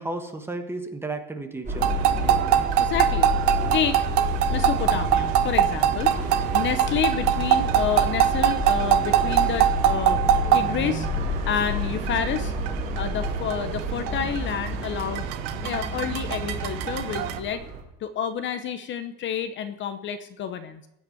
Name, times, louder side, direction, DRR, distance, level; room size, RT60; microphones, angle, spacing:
voice 1, 0.0-2.0, right 2 dB, 10° right, 6 dB, 1.3 m, -33 dB
Subway metro underground, 1.6-17.8, left 1 dB, 25° right, 3.4 m, -30 dB
sound 1, 1.8-17.4, right 11 dB, 80° right, 1.2 m, -24 dB
voice 2, 2.8-3.3 3.7-4.0 4.5-10.2 10.5-11.1 11.5-12.5 13.0-15.3 15.6-17.6 18.0-20.9, left 8 dB, 40° left, 9 dB, 0.9 m, -29 dB
Musical instrument, 10.0-17.6, left 4 dB, 20° left, 1.6 m, -39 dB
16.0 x 5.7 x 9.2 m, 0.87 s
cardioid pair, 150°, 29 cm